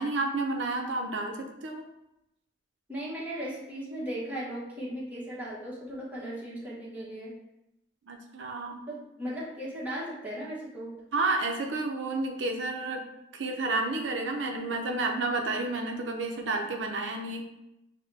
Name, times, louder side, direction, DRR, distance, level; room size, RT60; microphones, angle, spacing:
voice 1, 0.0-1.9 8.1-8.8 11.1-13.0 13.3-17.4, right 2 dB, 90° right, 3 dB, 0.5 m, -30 dB
voice 2, 2.9-7.3 8.9-10.9, equal, 10° right, -6 dB, 1.2 m, -37 dB
6.4 x 2.2 x 3.3 m, 0.86 s
head